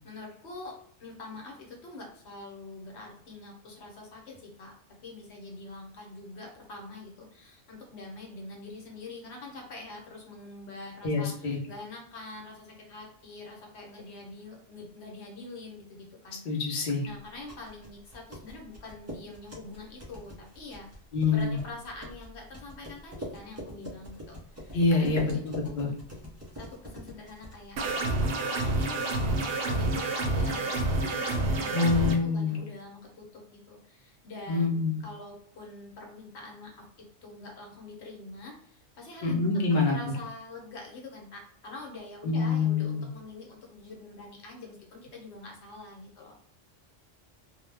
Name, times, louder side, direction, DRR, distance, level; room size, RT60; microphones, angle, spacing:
voice 1, 0.0-4.7 5.0-16.6 17.0-20.9 21.3-25.7 26.5-27.8 28.2-39.4 39.9-46.4, left 2 dB, 70° left, 0 dB, 1.0 m, -45 dB
voice 2, 11.0-11.6 16.4-17.1 21.1-21.6 24.7-25.9 31.7-32.6 34.5-35.0 39.2-40.0 42.2-43.1, left 4 dB, 50° left, -1 dB, 0.7 m, -26 dB
sound 1, 17.2-28.2, equal, 20° right, 0.4 m, -44 dB
sound 2, 27.8-32.2, right 2 dB, 65° right, 0.7 m, -28 dB
2.3 x 2.1 x 3.2 m, 0.64 s
omnidirectional pair, 1.2 m